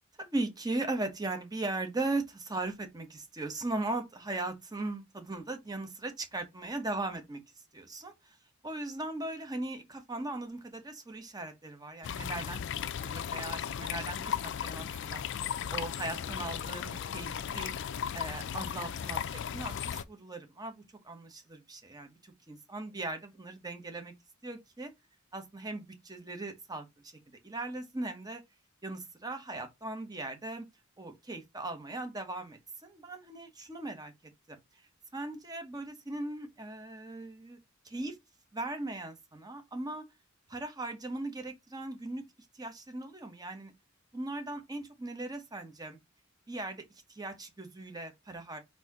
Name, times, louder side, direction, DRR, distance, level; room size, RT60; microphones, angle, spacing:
voice 1, 0.2-7.4 7.7-8.1 8.6-12.6 12.9-15.2 15.7-17.7 18.1-24.1 24.4-24.9 25.3-27.1 27.4-28.4 28.8-30.7 31.0-34.1 34.5-34.6 35.1-37.6 37.8-38.2 38.5-40.1 40.5-42.2 42.5-43.7 44.1-46.0 46.5-46.8 47.1-48.6, right 2 dB, 20° right, 0.9 m, -38 dB
sound 1, 12.0-20.0, left 8 dB, 60° left, 0.4 m, -36 dB
4.1 x 2.7 x 4.7 m
head